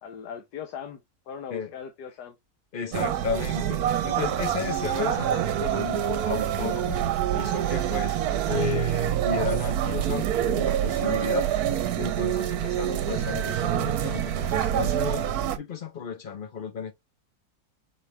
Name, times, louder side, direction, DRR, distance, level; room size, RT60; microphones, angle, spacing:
voice 1, 0.0-2.3, left 7 dB, 90° left, 1.4 m, -39 dB
voice 2, 2.7-7.0 7.3-8.2 8.5-11.5 12.0-15.3 15.6-16.9, left 6 dB, 50° left, 0.6 m, -33 dB
sound 1, 2.9-15.6, right 10 dB, 75° right, 1.1 m, -26 dB
4.8 x 3.3 x 2.9 m
omnidirectional pair, 1.7 m